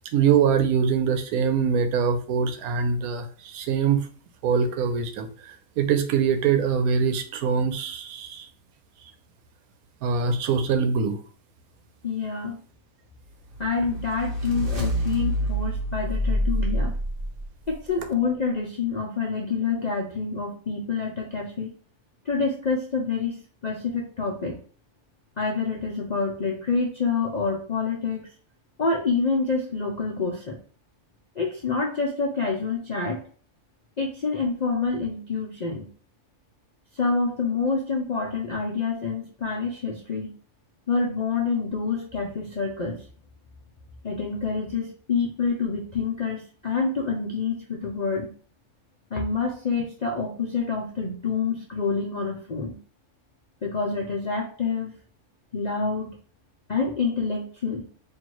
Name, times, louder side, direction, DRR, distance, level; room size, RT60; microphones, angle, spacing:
voice 1, 0.1-4.1 4.4-8.5 10.0-11.2, right 6 dB, 90° right, 8 dB, 1.1 m, -23 dB
voice 2, 12.0-12.6 13.6-16.9 17.7-21.7 22.3-24.6 25.4-28.3 28.8-30.6 31.4-33.2 34.0-35.9 36.9-40.4 40.9-43.0 44.0-48.3 49.1-52.8 53.6-54.9 55.5-56.1 56.7-57.8, left 4 dB, 60° left, -1 dB, 0.4 m, -27 dB
sound 1, 13.5-17.7, equal, 45° right, 0.9 m, -27 dB
4.4 x 2.7 x 3.0 m, 0.42 s
omnidirectional pair, 1.5 m